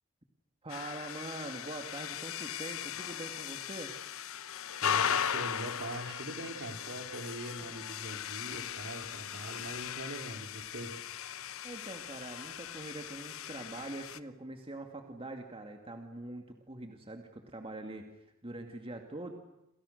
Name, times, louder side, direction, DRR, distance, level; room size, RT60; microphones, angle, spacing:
voice 1, 0.6-3.9 11.6-18.1 18.4-19.3, right 2 dB, 25° right, 4 dB, 2.3 m, -43 dB
sound 1, 0.7-14.2, left 9 dB, 65° left, 1.0 m, -38 dB
voice 2, 4.8-11.0, right 1 dB, 55° right, 4 dB, 4.1 m, -42 dB
29.0 x 28.0 x 6.7 m, 0.87 s
head